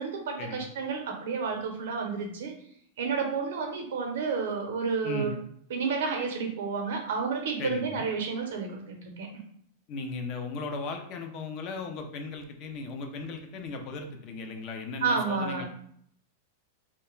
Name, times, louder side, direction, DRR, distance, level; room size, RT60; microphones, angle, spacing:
voice 1, 0.0-2.5 3.0-5.4 5.7-9.3 15.0-15.6, right 5 dB, 75° right, 3 dB, 0.6 m, -30 dB
voice 2, 7.6-8.0 9.9-15.6, left 3 dB, 40° left, 4 dB, 0.4 m, -36 dB
2.2 x 2.1 x 3.0 m, 0.67 s
supercardioid pair, 150°, 0 cm